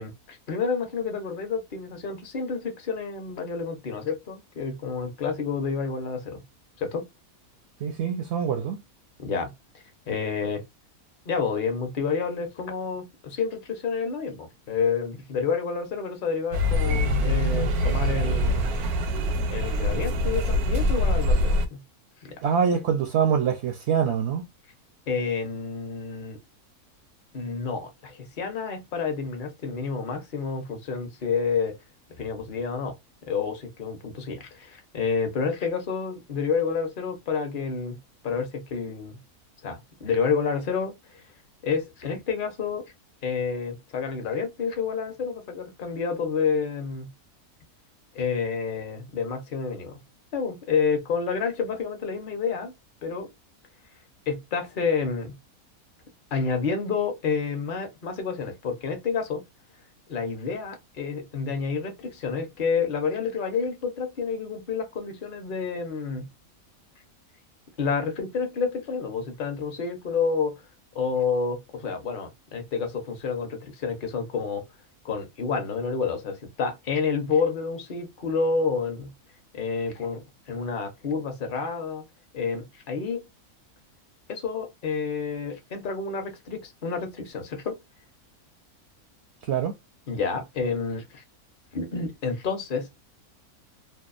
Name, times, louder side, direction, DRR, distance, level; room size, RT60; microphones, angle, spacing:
voice 1, 0.0-6.4 6.8-7.1 9.2-9.5 10.1-10.6 11.3-18.7 19.5-21.8 22.2-22.4 25.1-26.4 27.3-31.7 32.2-32.9 33.3-38.0 38.2-39.2 39.6-41.2 41.6-42.9 43.2-47.1 48.1-50.0 50.3-52.7 53.0-53.3 54.3-55.4 56.3-59.4 60.1-66.3 67.8-70.6 70.9-74.6 75.0-79.1 79.5-82.0 82.3-83.3 84.3-87.8 90.1-91.2 91.7-93.1, left 5 dB, 45° left, 0.8 m, -29 dB
voice 2, 7.8-8.8 22.4-24.4 89.4-89.8, right 7 dB, 65° right, 0.6 m, -24 dB
sound 1, 16.5-21.7, left 1 dB, 90° right, 1.2 m, -24 dB
2.7 x 2.2 x 2.3 m
omnidirectional pair, 1.5 m